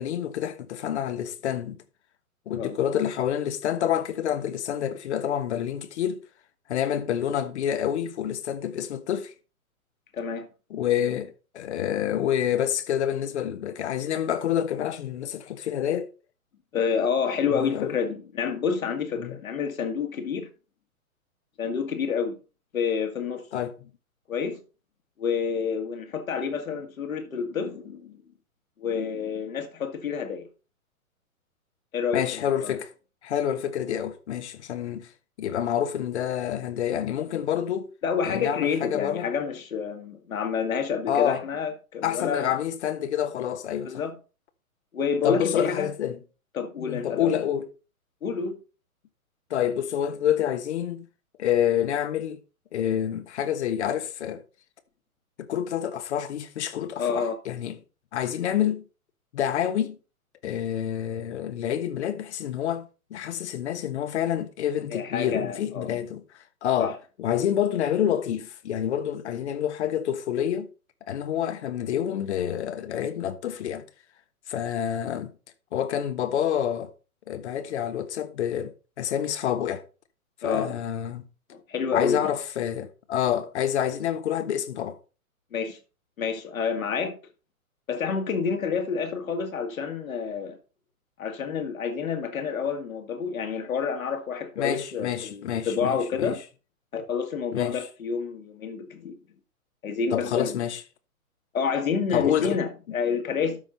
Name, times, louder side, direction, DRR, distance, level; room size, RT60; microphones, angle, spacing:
voice 1, 0.0-1.8 2.5-6.2 6.7-9.3 10.7-16.1 17.5-17.9 19.2-19.3 23.5-23.7 32.1-32.9 33.2-35.1 35.4-37.9 38.2-39.3 41.1-41.4 42.0-43.9 45.2-46.2 46.8-47.7 49.5-51.1 51.4-52.4 52.7-54.4 55.4-57.8 58.1-58.8 59.3-60.0 60.4-66.2 66.6-70.7 71.1-73.8 74.5-75.3 75.7-76.9 77.3-79.8 80.4-81.2 81.9-85.0 94.6-96.3 97.5-97.9 100.1-100.8 102.1-102.6, left 10 dB, 50° left, 1.3 m, -28 dB
voice 2, 10.1-10.5 16.7-20.5 21.6-22.4 22.7-23.5 24.3-24.6 25.2-28.2 28.8-30.5 31.9-32.8 38.0-42.6 43.8-44.2 44.9-45.9 46.5-47.4 48.2-48.6 57.0-57.4 64.9-66.0 66.8-66.9 80.4-80.8 81.7-82.2 85.5-85.8 86.2-87.2 87.9-90.6 91.2-96.4 96.9-99.2 99.8-100.6 101.5-103.6, left 6 dB, 70° left, 2.2 m, -28 dB
12.5 x 5.1 x 3.9 m
figure-of-eight pair, 125°, 43 cm